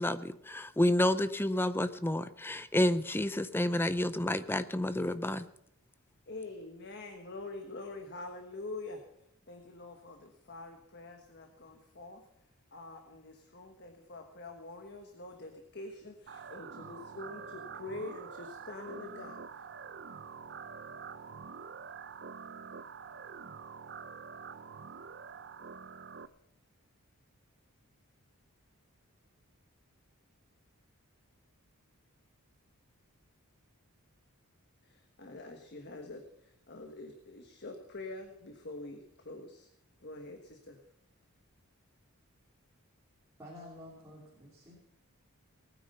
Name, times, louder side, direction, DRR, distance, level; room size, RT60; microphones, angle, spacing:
voice 1, 0.0-5.5, left 1 dB, 10° left, 13 dB, 0.5 m, -30 dB
voice 2, 6.3-9.0 9.5-12.2 12.7-19.7 34.8-39.7 40.0-40.8, left 2 dB, 50° left, 4 dB, 1.4 m, -45 dB
sound 1, 16.3-26.3, right 6 dB, 50° right, 0.6 m, -46 dB
voice 3, 43.4-44.9, left 1 dB, 15° right, -5 dB, 3.2 m, -50 dB
19.0 x 9.6 x 5.5 m, 0.77 s
head